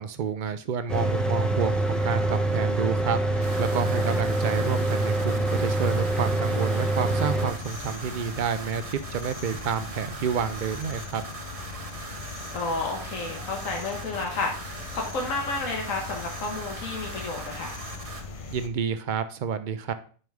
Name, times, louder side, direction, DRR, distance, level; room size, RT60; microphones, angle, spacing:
voice 1, 0.0-11.2 18.5-19.9, right 6 dB, 70° right, 11 dB, 0.4 m, -29 dB
Mechanical fan, 0.9-7.5, right 2 dB, ahead, 0.8 m, -25 dB
sound 1, 3.4-18.2, right 3 dB, 30° right, 0.9 m, -41 dB
sound 2, 7.5-18.7, left 4 dB, 45° left, 0.4 m, -40 dB
voice 2, 12.5-17.8 18.4-18.5, left 3 dB, 75° left, 0 dB, 1.7 m, -31 dB
9.2 x 5.4 x 3.5 m, 0.41 s
omnidirectional pair, 1.4 m